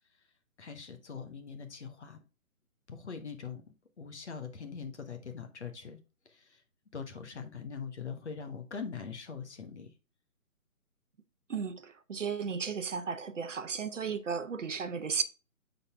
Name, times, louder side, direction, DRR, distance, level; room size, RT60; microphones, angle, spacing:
voice 1, 0.6-2.2 2.9-3.6 4.0-6.0 6.2-6.6 6.9-9.9, left 6 dB, 50° left, 1.1 m, -42 dB
voice 2, 11.5-15.2, right 6 dB, 55° right, 0.7 m, -34 dB
7.0 x 4.0 x 3.4 m
hypercardioid pair, 165°, 44 cm